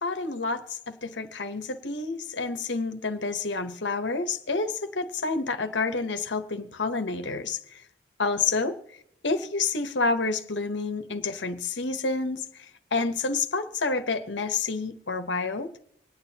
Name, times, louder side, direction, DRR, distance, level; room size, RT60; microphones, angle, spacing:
voice 1, 0.0-7.8 8.2-8.7 9.2-15.7, left 4 dB, 75° left, 8 dB, 1.1 m, -29 dB
25.5 x 9.0 x 2.8 m, 0.77 s
head